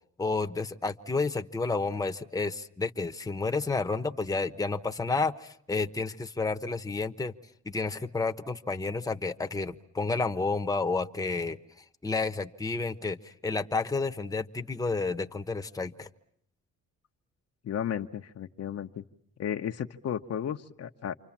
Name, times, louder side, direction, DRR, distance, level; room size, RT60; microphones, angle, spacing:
voice 1, 0.2-7.3 7.6-11.6 12.0-16.1, left 3 dB, 10° left, 7 dB, 1.1 m, -30 dB
voice 2, 17.6-19.0 19.4-21.2, left 9 dB, 55° left, 6 dB, 1.0 m, -34 dB
28.5 x 25.0 x 7.3 m, 0.71 s
cardioid pair, 90°, 30 cm